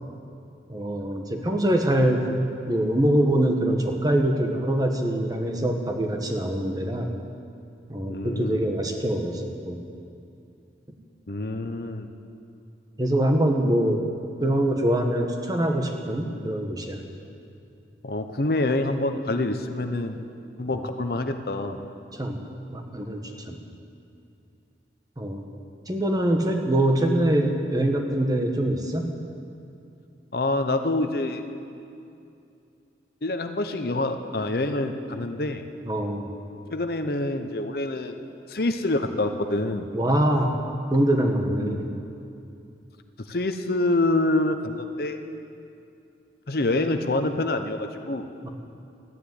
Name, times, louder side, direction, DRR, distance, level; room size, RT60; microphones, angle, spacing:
voice 1, 0.7-2.4 2.7-7.1 7.9-9.8 13.0-14.0 14.4-17.0 22.1-22.4 22.7-23.6 25.2-25.4 25.9-29.1 35.8-36.3 39.9-40.5 40.9-42.0 48.4-48.5, right 1 dB, 20° right, 3 dB, 1.2 m, -24 dB
voice 2, 8.1-8.8 11.3-12.1 18.0-20.2 20.6-21.8 30.3-31.4 33.2-35.6 36.7-38.1 38.5-39.9 41.6-41.9 43.2-45.2 46.5-48.3, left 2 dB, 55° left, 7 dB, 0.8 m, -26 dB
14.0 x 10.0 x 9.5 m, 2.6 s
head